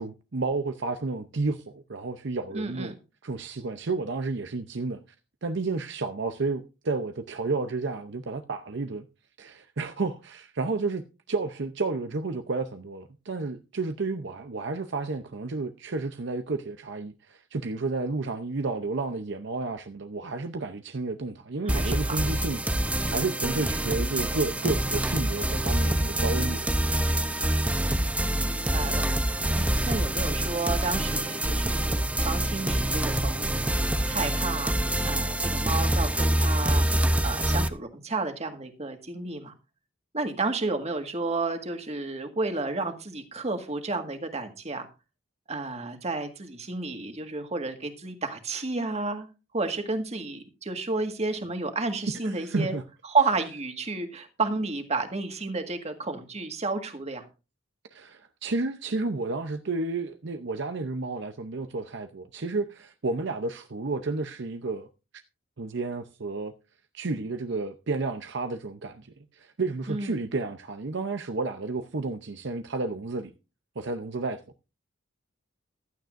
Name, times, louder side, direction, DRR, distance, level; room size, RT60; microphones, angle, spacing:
voice 1, 0.0-2.9 3.2-5.0 5.4-9.1 9.4-22.8 23.1-27.2 52.2-52.8 57.9-64.9 65.6-66.5 66.9-69.1 69.3-73.3 73.8-74.4, right 3 dB, 65° right, 0.7 m, -31 dB
voice 2, 2.5-2.9 21.6-22.2 28.4-29.0 29.6-31.9 32.2-33.6 34.1-36.9 37.2-39.5 40.1-44.9 45.5-49.3 49.5-52.7 53.1-57.3 69.9-70.2, right 3 dB, 35° right, 1.7 m, -31 dB
sound 1, 21.7-37.7, right 1 dB, 5° right, 0.7 m, -26 dB
15.5 x 12.0 x 2.6 m
head